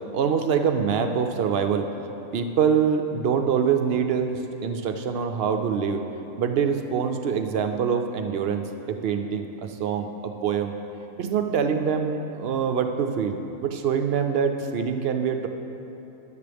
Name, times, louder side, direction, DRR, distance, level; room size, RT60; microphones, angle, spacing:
voice 1, 0.1-1.9 2.3-6.0 6.4-10.1 10.4-10.8 11.2-15.5, right 7 dB, 75° right, 6 dB, 0.5 m, -25 dB
13.5 x 10.5 x 3.4 m, 3.0 s
omnidirectional pair, 1.6 m